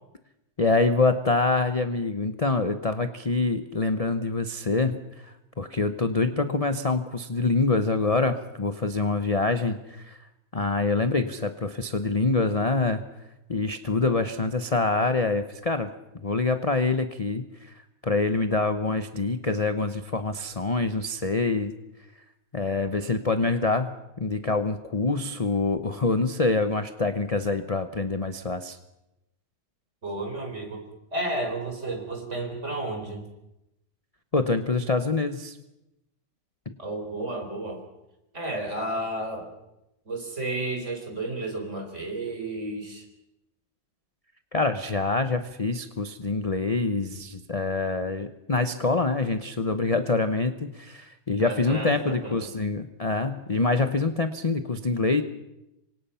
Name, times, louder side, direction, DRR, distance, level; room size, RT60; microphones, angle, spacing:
voice 1, 0.6-10.2 10.5-13.0 13.5-15.9 16.2-17.7 18.0-21.7 22.5-28.8 34.3-35.6 36.7-36.8 44.5-55.2, left 3 dB, 30° left, 9 dB, 0.7 m, -25 dB
voice 2, 30.0-30.8 31.1-33.2 36.8-37.8 38.3-39.5 40.1-43.0 51.4-52.5, right 2 dB, 40° right, 4 dB, 4.7 m, -32 dB
27.5 x 25.0 x 5.7 m, 0.91 s
omnidirectional pair, 1.9 m